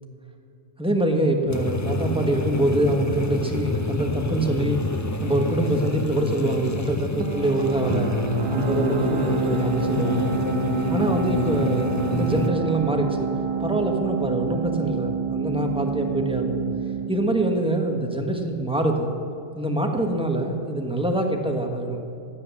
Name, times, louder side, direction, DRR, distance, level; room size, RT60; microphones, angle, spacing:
voice 1, 0.8-4.8 5.2-8.1 8.5-10.3 10.9-13.3 13.6-16.7 17.1-19.1 19.5-22.0, right 1 dB, 5° right, 3 dB, 1.3 m, -24 dB
sound 1, 1.5-12.5, left 2 dB, 25° left, 0.4 m, -27 dB
sound 2, 7.2-18.6, right 7 dB, 50° right, 0.3 m, -28 dB
16.0 x 8.9 x 7.3 m, 2.6 s
omnidirectional pair, 1.3 m